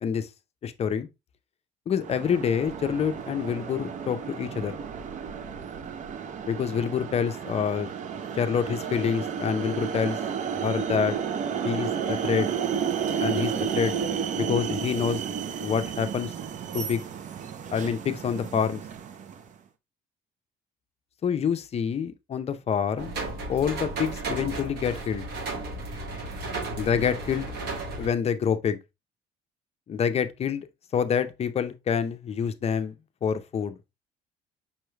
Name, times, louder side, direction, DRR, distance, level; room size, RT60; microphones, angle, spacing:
voice 1, 0.6-1.1 1.9-4.8 6.5-7.9 8.3-10.2 10.5-11.2 11.6-12.5 13.2-14.0 14.4-15.2 15.6-16.3 16.7-17.0 17.7-18.8 21.2-23.1 23.5-25.3 26.8-27.5 28.0-28.8 29.9-30.7 30.9-32.9 33.2-33.8, left 7 dB, 40° left, 0.5 m, -27 dB
sound 1, 2.0-19.5, right 7 dB, 45° right, 0.5 m, -32 dB
sound 2, 23.0-28.1, right 2 dB, 75° right, 1.3 m, -34 dB
5.5 x 2.2 x 3.2 m
cardioid pair, 110°, 17 cm